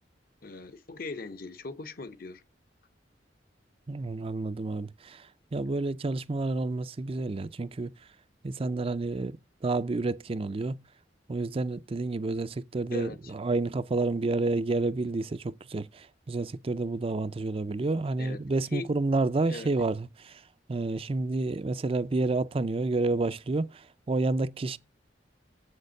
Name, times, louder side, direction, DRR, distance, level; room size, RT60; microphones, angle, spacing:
voice 1, 0.4-2.4 12.9-13.3 18.2-18.4 18.7-18.9 19.5-19.7, left 3 dB, 50° left, 0.9 m, -39 dB
voice 2, 3.9-5.3 5.5-7.9 8.4-9.4 9.6-10.8 11.3-20.4 20.7-24.8, right 3 dB, 30° right, 0.4 m, -29 dB
7.8 x 6.5 x 6.4 m
head